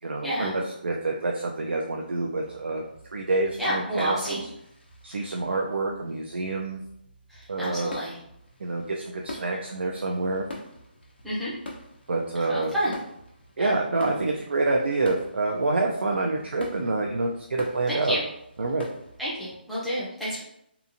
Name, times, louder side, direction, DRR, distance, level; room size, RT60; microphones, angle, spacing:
voice 1, 0.0-2.8 3.1-4.5 5.0-6.8 7.5-7.9 8.6-10.4 12.1-12.7 13.6-18.2 18.6-18.8, right 3 dB, 90° right, 0 dB, 0.4 m, -27 dB
sound 1, 2.4-19.6, left 1 dB, 75° left, 0.8 m, -45 dB
voice 2, 3.6-4.4 7.3-8.1 11.2-11.5 12.5-12.9 13.6-13.7 17.9-18.2 19.2-20.4, equal, ahead, -11 dB, 0.5 m, -29 dB
2.8 x 2.4 x 2.5 m, 0.75 s
hypercardioid pair, 170°, 6 cm